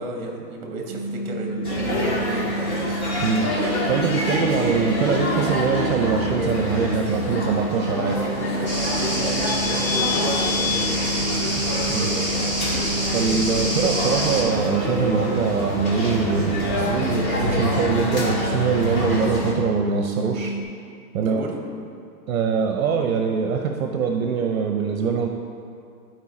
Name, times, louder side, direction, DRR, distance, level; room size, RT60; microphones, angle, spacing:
voice 1, 0.0-2.8 7.9-11.0 21.2-21.6, right 1 dB, 25° right, 1 dB, 0.9 m, -32 dB
sound 1, 0.9-20.6, right 2 dB, 5° right, 1.3 m, -30 dB
sound 2, 1.6-19.5, left 1 dB, 60° left, 2.1 m, -27 dB
voice 2, 3.2-8.2 11.6-12.3 13.1-20.5 21.1-21.4 22.3-25.3, right 6 dB, 55° right, 3 dB, 0.6 m, -23 dB
sound 3, 8.7-14.4, equal, 20° left, 1.2 m, -27 dB
11.0 x 4.5 x 4.2 m, 2.4 s
hypercardioid pair, 180°, 49 cm